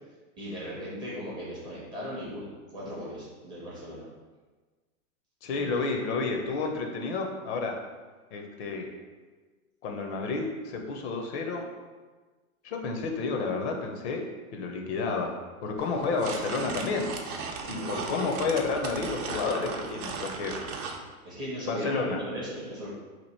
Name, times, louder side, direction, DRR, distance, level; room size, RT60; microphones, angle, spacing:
voice 1, 0.4-4.1 5.5-5.9 17.7-17.9 21.2-22.9, equal, 10° right, -8 dB, 0.5 m, -38 dB
voice 2, 5.4-7.8 8.3-8.9 9.8-11.6 12.6-14.2 14.5-15.4 15.6-17.1 17.7-20.6 21.7-22.2, left 4 dB, 50° left, 2 dB, 0.6 m, -30 dB
sound 1, 15.8-21.0, right 5 dB, 85° right, 0.7 m, -37 dB
2.9 x 2.5 x 4.2 m, 1.3 s
hypercardioid pair, 140°, 43 cm